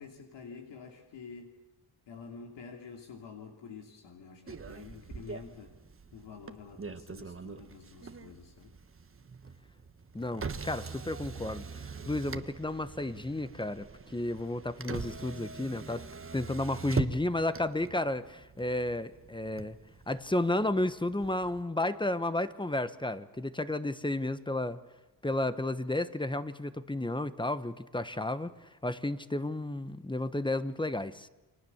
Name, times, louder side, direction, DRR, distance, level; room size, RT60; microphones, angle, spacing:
voice 1, 0.0-1.6 2.1-5.8 6.1-8.7, left 5 dB, 85° left, 2 dB, 3.1 m, -48 dB
Motor vehicle (road), 4.5-21.6, right 5 dB, 30° right, 1.4 m, -43 dB
voice 2, 10.1-13.9 14.1-16.1 16.3-19.8 20.1-24.8 25.2-28.5 28.8-31.3, left 1 dB, 10° left, 12 dB, 1.1 m, -32 dB
30.0 x 24.5 x 7.3 m, 1.0 s
cardioid pair, 95°, 42 cm